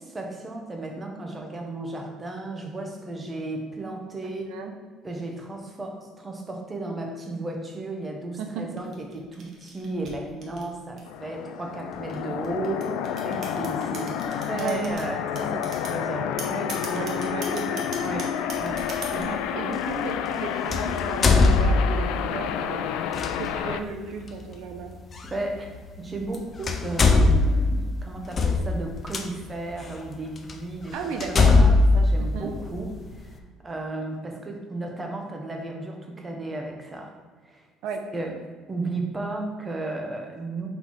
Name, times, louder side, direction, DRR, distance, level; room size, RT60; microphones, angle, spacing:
voice 1, 0.0-4.5 5.0-13.0 13.2-17.0 17.7-19.3 25.2-25.7 26.0-31.0 31.3-37.2 37.4-37.7 38.1-38.4 38.7-40.7, right 2 dB, 15° right, 2 dB, 0.8 m, -34 dB
sound 1, 8.8-11.2 11.9-15.0 15.4-16.0 16.4-19.4, right 4 dB, 40° right, 1.2 m, -39 dB
sound 2, 11.1-23.8, left 9 dB, 80° left, 0.4 m, -30 dB
voice 2, 14.5-14.8 16.7-17.8 19.1-22.9 23.4-24.9 30.9-31.5 32.2-32.5 37.8-38.0, right 6 dB, 65° right, 5 dB, 0.7 m, -34 dB
sound 3, 18.6-18.8 20.7-22.2 23.1-23.3 25.2-25.3 26.2-26.4 26.6-29.2 29.9-30.0 30.5-30.6 31.2-33.0, left 3 dB, 25° left, 0.5 m, -19 dB
5.4 x 4.4 x 4.5 m, 1.5 s
cardioid pair, 165°, 0 cm